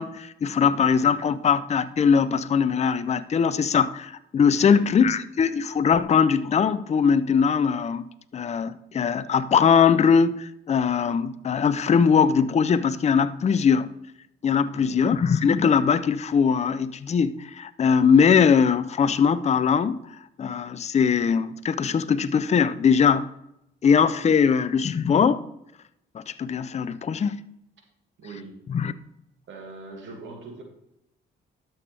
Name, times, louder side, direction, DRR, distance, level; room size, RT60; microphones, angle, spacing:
voice 1, 0.0-13.9 14.4-20.0 20.4-23.3 23.8-25.4 26.1-27.4 28.7-28.9, left 6 dB, 35° left, 13 dB, 0.5 m, -21 dB
voice 2, 4.6-5.0 14.7-15.2 28.2-28.7 29.5-30.6, right 3 dB, 70° right, 1 dB, 2.2 m, -42 dB
12.0 x 6.9 x 3.3 m, 0.81 s
cardioid pair, 90°, 20 cm